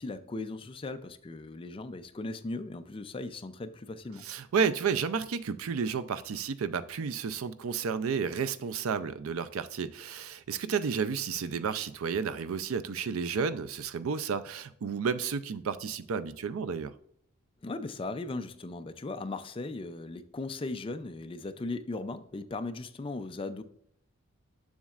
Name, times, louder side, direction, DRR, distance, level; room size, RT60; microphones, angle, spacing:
voice 1, 0.0-4.2 17.6-23.6, left 2 dB, 25° left, 0.4 m, -38 dB
voice 2, 4.2-16.9, right 6 dB, 80° right, 0.4 m, -32 dB
7.1 x 6.3 x 2.4 m
head